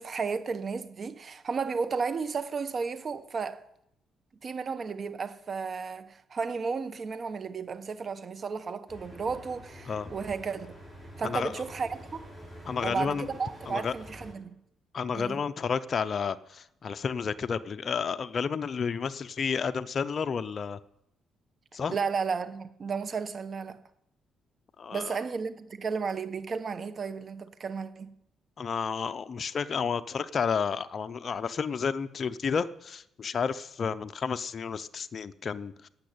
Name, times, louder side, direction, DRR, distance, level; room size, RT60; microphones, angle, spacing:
voice 1, 0.0-3.6 4.4-10.7 11.2-12.3 12.8-14.5 15.1-15.4 21.9-23.8 24.9-28.1, right 5 dB, 45° right, 1.2 m, -33 dB
sound 1, 8.9-14.3, equal, 5° left, 6.8 m, -47 dB
voice 2, 11.2-11.6 12.7-13.3 13.7-13.9 14.9-20.8 21.7-22.0 24.8-25.2 28.6-35.9, left 6 dB, 45° left, 0.7 m, -31 dB
13.0 x 8.7 x 8.6 m
cardioid pair, 90°, 0 cm